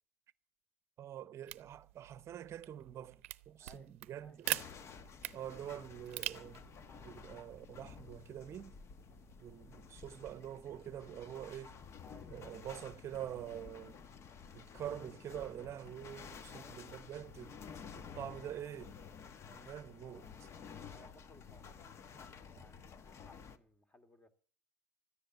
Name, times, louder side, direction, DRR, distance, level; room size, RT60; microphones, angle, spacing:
voice 1, 1.0-4.6 5.3-6.7 7.0-8.7 9.4-11.8 12.3-14.0 14.5-17.6 18.0-18.9 19.6-20.5, right 11 dB, 40° right, 0.8 m, -46 dB
sound 1, 1.4-9.4, right 17 dB, 80° right, 0.6 m, -45 dB
voice 2, 3.6-3.9 4.2-4.4 6.9-7.2 12.0-12.9 16.5-16.8 19.2-19.7 20.7-22.0 22.4-24.3, left 1 dB, 15° left, 2.4 m, -62 dB
sound 2, 4.4-23.6, left 6 dB, 40° left, 1.2 m, -52 dB
13.5 x 10.0 x 7.8 m
hypercardioid pair, 85°, 7 cm